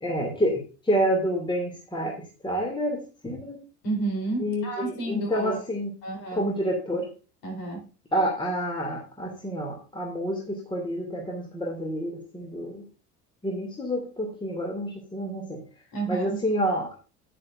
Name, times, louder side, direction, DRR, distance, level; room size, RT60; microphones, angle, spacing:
voice 1, 0.0-3.6 4.4-5.9 6.3-7.1 8.1-12.8 13.4-15.6 16.1-16.9, equal, 10° left, 0 dB, 2.3 m, -28 dB
voice 2, 3.8-5.6 6.0-6.7 7.4-7.8 15.9-16.4, right 2 dB, 45° left, 2 dB, 3.6 m, -31 dB
9.4 x 9.1 x 2.5 m, 0.34 s
figure-of-eight pair, 65°, 46 cm